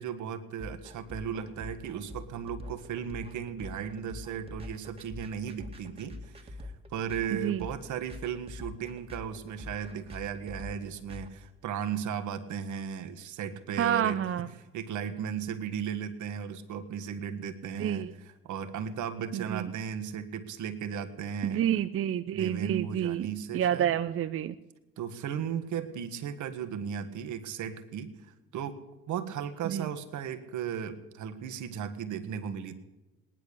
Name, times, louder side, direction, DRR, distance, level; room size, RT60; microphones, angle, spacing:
voice 1, 0.0-14.2 14.6-21.6 22.3-23.9 25.0-32.7, right 8 dB, 65° right, 7 dB, 1.6 m, -36 dB
sound 1, 0.6-11.3, left 2 dB, 15° right, 2.1 m, -45 dB
voice 2, 13.8-14.5 17.8-18.1 19.3-19.7 21.4-23.3 23.5-24.5 29.7-29.9, right 10 dB, 40° right, 10 dB, 0.6 m, -29 dB
18.5 x 10.5 x 6.9 m, 1.1 s
supercardioid pair, 65°, 32 cm